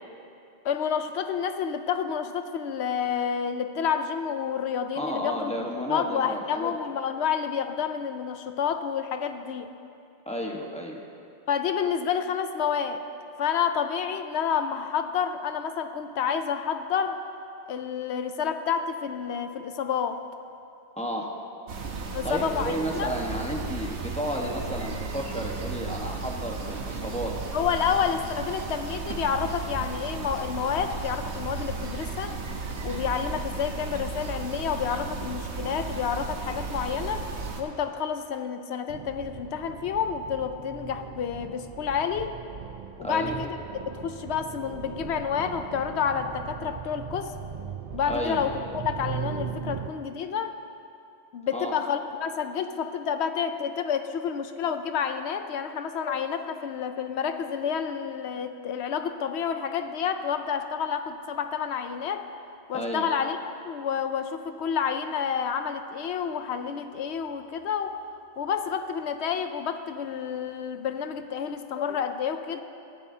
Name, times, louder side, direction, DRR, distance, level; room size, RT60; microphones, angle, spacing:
voice 1, 0.6-5.6 5.9-9.7 11.5-13.0 13.4-17.2 17.7-20.2 22.1-23.1 27.5-32.4 32.8-37.2 37.6-42.4 43.0-43.6 43.9-47.3 47.9-48.5 48.8-50.5 51.3-62.3 62.7-68.0 68.4-72.6, left 7 dB, 75° left, 8 dB, 0.9 m, -29 dB
voice 2, 4.9-6.7 10.3-11.0 21.0-21.3 22.2-27.4 43.0-43.4 48.1-48.4 51.5-51.7 62.7-63.1, equal, 5° left, -1 dB, 1.1 m, -32 dB
sound 1, 21.7-37.6, right 4 dB, 85° right, 1.3 m, -34 dB
sound 2, 38.9-49.9, right 8 dB, 50° right, 0.5 m, -38 dB
18.0 x 13.0 x 2.8 m, 2.6 s
omnidirectional pair, 1.1 m